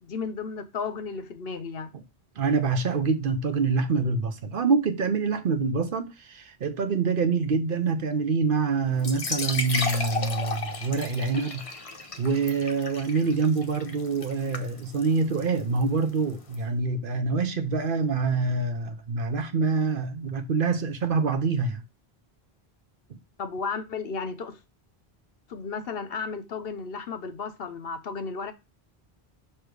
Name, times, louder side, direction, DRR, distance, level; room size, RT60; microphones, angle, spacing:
voice 1, 0.0-1.9 23.4-24.6 25.5-28.5, left 5 dB, 65° left, 0.9 m, -34 dB
voice 2, 2.4-11.7 12.2-21.8 23.1-23.2, right 4 dB, 60° right, 0.9 m, -26 dB
sound 1, 9.0-16.6, left 3 dB, 35° left, 0.8 m, -34 dB
6.5 x 3.1 x 4.7 m
omnidirectional pair, 1.1 m